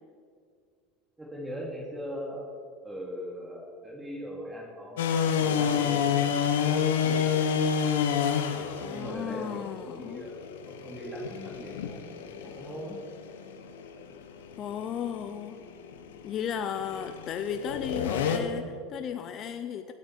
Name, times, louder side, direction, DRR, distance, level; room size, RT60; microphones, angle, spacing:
voice 1, 1.2-2.5 2.8-7.4 8.9-10.3 10.7-12.0 12.3-13.0, equal, 15° right, -3 dB, 2.5 m, -40 dB
sound 1, 5.0-18.4, left 7 dB, 85° left, 1.1 m, -29 dB
voice 2, 8.8-10.3 14.6-15.6 16.2-19.9, left 8 dB, 45° left, 9 dB, 0.6 m, -35 dB
17.0 x 8.8 x 4.6 m, 2.1 s
supercardioid pair, 105°, 0 cm